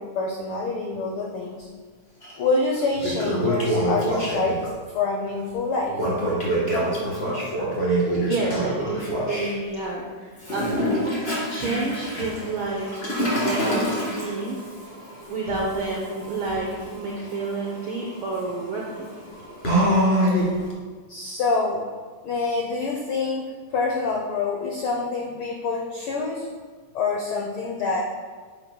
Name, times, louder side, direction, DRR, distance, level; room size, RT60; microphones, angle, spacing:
voice 1, 0.0-1.7 2.4-4.6 4.9-6.0 21.1-21.8 22.2-26.5 26.9-28.0, left 3 dB, 85° left, 0 dB, 1.1 m, -26 dB
Toilet flush, 2.2-2.3 2.8-4.7 5.9-9.5 10.4-20.7, equal, 25° left, 2.0 m, -26 dB
voice 2, 8.0-11.0 11.5-14.6 15.3-19.1, right 2 dB, 80° right, -2 dB, 1.1 m, -30 dB
11.0 x 7.4 x 2.2 m, 1.5 s
omnidirectional pair, 3.4 m